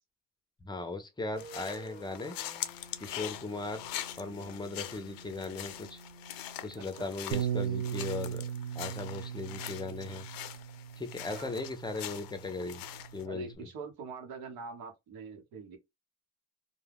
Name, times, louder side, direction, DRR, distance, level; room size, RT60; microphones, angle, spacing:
voice 1, 0.6-2.4 3.0-3.9 4.2-6.0 6.6-8.5 8.7-10.3 11.0-12.8 13.1-13.7, left 3 dB, 15° left, 0.5 m, -38 dB
sound 1, 1.3-7.4, right 3 dB, 30° right, 0.9 m, -52 dB
sound 2, 1.4-13.2, left 12 dB, 75° left, 0.5 m, -43 dB
Bass guitar, 7.3-13.5, right 9 dB, 65° right, 0.5 m, -38 dB
voice 2, 11.3-11.6 13.2-15.8, right 5 dB, 85° right, 1.0 m, -44 dB
2.2 x 2.2 x 3.3 m
cardioid pair, 110°, 35 cm